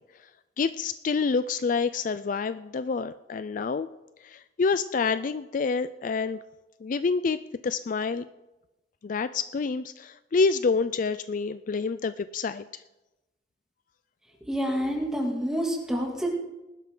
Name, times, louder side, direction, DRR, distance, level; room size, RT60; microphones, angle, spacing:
voice 1, 0.6-3.9 4.2-6.4 6.8-8.3 9.0-12.6, left 4 dB, 50° left, 14 dB, 0.4 m, -27 dB
voice 2, 14.4-16.4, equal, 5° right, -1 dB, 2.6 m, -28 dB
20.0 x 12.0 x 3.9 m, 1.0 s
head